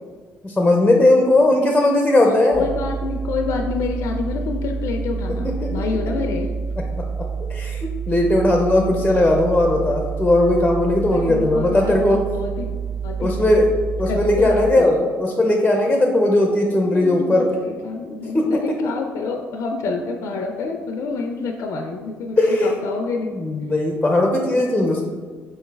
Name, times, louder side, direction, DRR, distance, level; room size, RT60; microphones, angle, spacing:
voice 1, 0.4-2.7 5.4-5.8 6.9-7.0 7.5-12.2 13.2-17.5 18.3-18.9 22.4-22.8 23.3-25.0, left 1 dB, 10° left, 1 dB, 0.5 m, -18 dB
voice 2, 2.5-6.6 11.1-12.8 13.0-13.3 14.1-15.0 16.9-23.3, left 4 dB, 65° left, 3 dB, 0.4 m, -28 dB
sound 1, 2.5-14.7, right 6 dB, 35° right, 1.3 m, -28 dB
4.4 x 3.1 x 3.3 m, 1.5 s
supercardioid pair, 85°, 6 cm